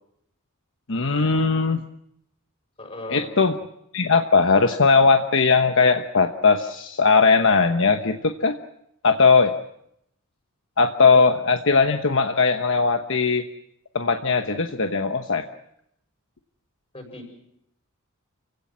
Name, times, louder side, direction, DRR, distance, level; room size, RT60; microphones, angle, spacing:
voice 1, 0.9-1.8 3.1-3.5 3.9-8.5 9.0-9.5 10.8-13.4 13.9-15.4, left 4 dB, 60° left, 6 dB, 1.1 m, -19 dB
voice 2, 2.8-3.3 16.9-17.3, left 1 dB, 30° left, 3 dB, 6.8 m, -37 dB
28.5 x 17.0 x 7.4 m, 0.76 s
head